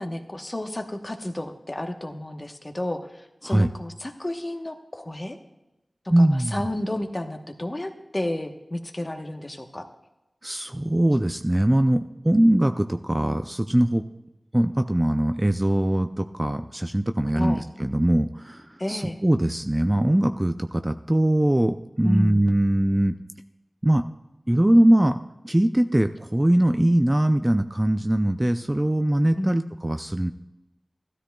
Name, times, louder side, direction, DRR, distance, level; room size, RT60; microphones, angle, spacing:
voice 1, 0.0-5.4 6.2-9.8 17.3-17.6 18.8-19.2 22.0-22.5 29.4-29.6, left 1 dB, 30° left, 5 dB, 1.0 m, -31 dB
voice 2, 6.1-6.6 10.4-14.0 14.5-23.2 23.8-24.0 24.5-25.2 25.4-30.3, right 1 dB, 20° right, 8 dB, 0.4 m, -21 dB
15.0 x 13.0 x 2.3 m, 0.94 s
wide cardioid pair, 75°, 0 cm